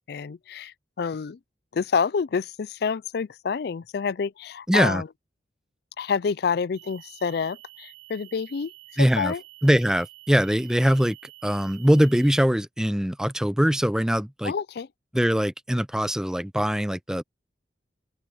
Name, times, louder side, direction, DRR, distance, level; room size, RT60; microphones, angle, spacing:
voice 1, 0.1-1.4 1.7-5.1 6.0-9.4 14.4-14.9, left 5 dB, 60° left, 0.4 m, -28 dB
voice 2, 4.7-5.0 9.0-9.3 9.6-11.2 11.4-14.5 15.1-17.2, equal, 5° right, 0.5 m, -22 dB
sound 1, 6.7-12.5, right 22 dB, 70° right, 4.8 m, -49 dB
open air
head